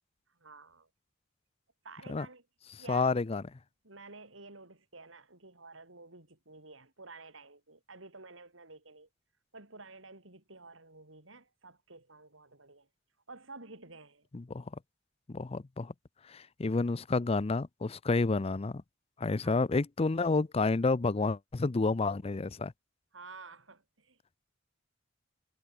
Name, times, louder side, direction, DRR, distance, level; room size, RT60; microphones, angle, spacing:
voice 1, 0.3-0.9 1.8-2.5 2.8-3.2 3.8-9.1 9.5-12.9 13.3-14.3 19.4-19.6 23.1-24.4, right 3 dB, 80° right, 5.2 m, -51 dB
voice 2, 2.9-3.4 14.3-14.6 15.3-15.9 16.3-18.8 19.2-22.7, left 3 dB, 30° left, 0.5 m, -30 dB
head